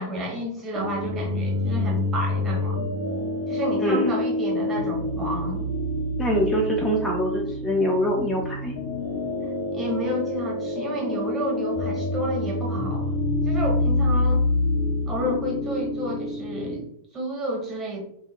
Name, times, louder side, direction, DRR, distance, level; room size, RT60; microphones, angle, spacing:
voice 1, 0.0-2.8 3.5-5.6 9.4-13.2 13.5-14.4 15.1-16.9 17.1-18.0, equal, 25° right, 0 dB, 0.9 m, -30 dB
sound 1, 0.7-16.8, left 1 dB, 70° left, 0.6 m, -27 dB
voice 2, 3.8-4.1 6.2-8.7, equal, 5° left, -2 dB, 0.4 m, -24 dB
2.3 x 2.0 x 3.0 m, 0.70 s
figure-of-eight pair, 95°, 0 cm